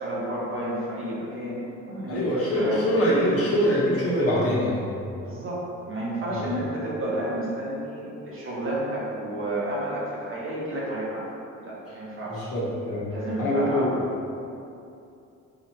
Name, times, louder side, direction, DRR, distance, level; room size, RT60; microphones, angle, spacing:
voice 1, 0.0-2.2 2.6-3.5 5.2-11.3 11.6-12.5 13.1-13.9, right 1 dB, 45° right, -6 dB, 1.2 m, -31 dB
voice 2, 2.1-4.8 6.3-6.5 12.3-13.1 13.4-14.0, equal, 50° left, -7 dB, 1.3 m, -24 dB
4.9 x 2.7 x 3.1 m, 2.6 s
cardioid pair, 90°, 30 cm